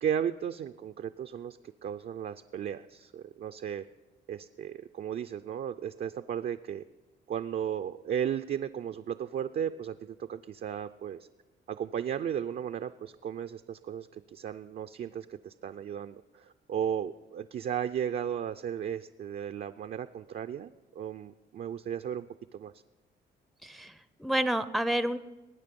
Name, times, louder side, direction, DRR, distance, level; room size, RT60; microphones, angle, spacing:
voice 1, 0.0-3.8 4.3-6.8 7.3-11.2 11.7-20.7 21.0-22.3 22.5-22.7, right 9 dB, 50° right, 8 dB, 0.4 m, -35 dB
voice 2, 23.6-25.2, right 1 dB, ahead, 13 dB, 0.5 m, -29 dB
20.5 x 9.0 x 5.3 m, 1.2 s
cardioid pair, 90°, 20 cm